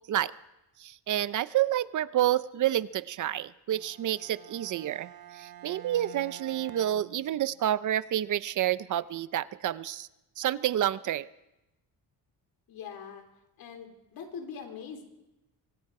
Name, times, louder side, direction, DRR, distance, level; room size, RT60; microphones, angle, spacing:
voice 1, 0.8-10.1 10.4-11.3, right 12 dB, 55° right, 16 dB, 0.7 m, -29 dB
Bowed string instrument, 3.7-7.8, right 12 dB, 70° right, 1.3 m, -49 dB
voice 2, 12.7-13.3 13.6-15.0, left 6 dB, 70° left, 5 dB, 4.0 m, -42 dB
25.5 x 24.5 x 4.9 m, 0.94 s
cardioid pair, 155°, 37 cm